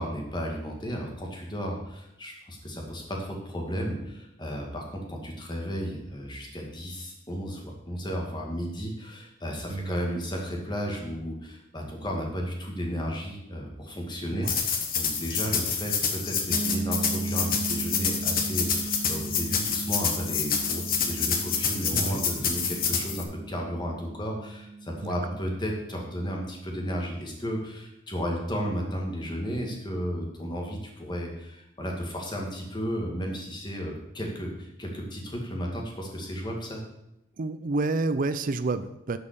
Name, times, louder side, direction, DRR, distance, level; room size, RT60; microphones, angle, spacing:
voice 1, 0.0-36.8, equal, 20° left, 0 dB, 2.1 m, -33 dB
voice 2, 14.3-14.6 21.9-22.2 25.0-25.1 37.4-39.2, right 3 dB, 45° right, 11 dB, 0.4 m, -29 dB
sound 1, 14.4-23.2, left 6 dB, 45° left, 1.3 m, -28 dB
sound 2, 16.5-26.2, right 4 dB, 80° right, 1.6 m, -38 dB
10.5 x 5.5 x 6.8 m, 0.85 s
head